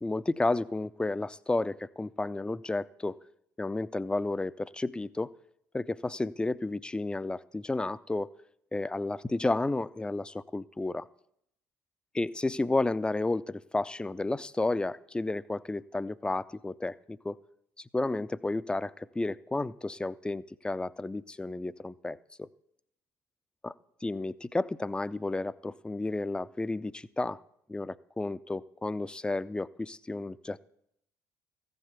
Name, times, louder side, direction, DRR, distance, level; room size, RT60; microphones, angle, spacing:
voice 1, 0.0-3.2 3.6-5.3 5.7-8.3 8.7-11.1 12.1-17.4 17.8-22.5 23.6-23.7 24.0-27.4 27.7-30.6, left 2 dB, 10° left, 17 dB, 0.4 m, -32 dB
14.5 x 5.6 x 8.1 m, 0.73 s
figure-of-eight pair, 50°, 9 cm